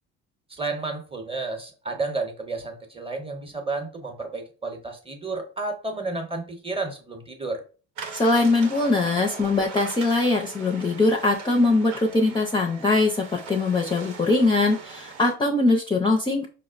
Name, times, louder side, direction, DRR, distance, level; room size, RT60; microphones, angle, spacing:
voice 1, 0.6-7.6, right 3 dB, 15° right, 4 dB, 0.7 m, -31 dB
sound 1, 8.0-15.3, right 5 dB, 80° right, 0.8 m, -40 dB
voice 2, 8.1-16.5, left 2 dB, 15° left, 0 dB, 0.4 m, -22 dB
4.8 x 2.0 x 2.4 m, 0.37 s
supercardioid pair, 85°, 33 cm